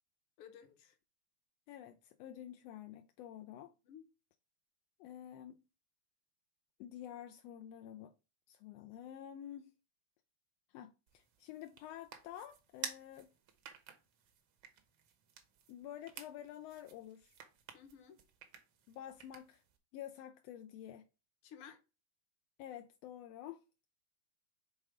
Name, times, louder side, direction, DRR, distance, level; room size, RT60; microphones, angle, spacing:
voice 1, 0.4-0.9 3.8-4.1 17.7-18.2 21.4-21.8, left 8 dB, 60° left, 1.6 m, -55 dB
voice 2, 1.7-3.7 5.0-5.6 6.8-8.1 8.5-9.7 10.7-13.3 15.7-17.3 18.9-19.6 19.9-21.0 22.6-23.6, left 11 dB, 80° left, 1.4 m, -49 dB
sound 1, 11.1-19.8, right 7 dB, 65° right, 1.2 m, -52 dB
6.3 x 3.7 x 4.9 m
omnidirectional pair, 3.4 m